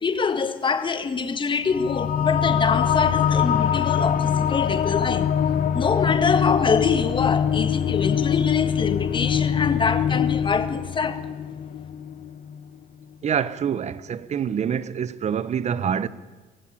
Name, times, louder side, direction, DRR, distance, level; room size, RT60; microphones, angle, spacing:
voice 1, 0.0-5.3 5.7-11.2, left 5 dB, 30° left, 1.7 m, -25 dB
sound 1, 1.7-12.6, left 8 dB, 55° left, 1.3 m, -23 dB
voice 2, 13.2-16.1, right 8 dB, 40° right, 1.0 m, -26 dB
24.0 x 16.0 x 8.7 m
cardioid pair, 110°, 17 cm